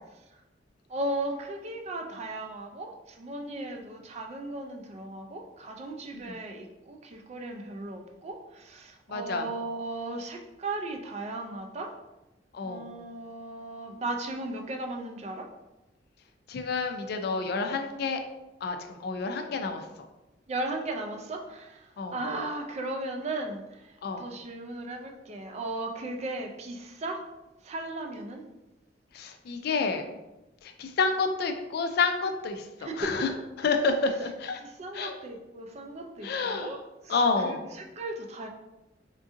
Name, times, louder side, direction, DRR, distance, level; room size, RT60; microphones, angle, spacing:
voice 1, 0.9-11.9 12.6-15.5 20.5-27.2 27.6-28.4 32.8-33.1 34.6-36.8 37.0-38.5, right 2 dB, 35° right, 3 dB, 0.4 m, -36 dB
voice 2, 9.1-9.5 12.5-12.8 16.5-18.2 18.6-19.9 22.0-22.2 24.0-24.2 29.1-30.0 30.6-33.3 33.6-34.6 34.9-35.2 36.2-36.7 37.1-37.6, left 4 dB, 60° left, 5 dB, 0.3 m, -29 dB
3.7 x 2.5 x 2.5 m, 0.99 s
head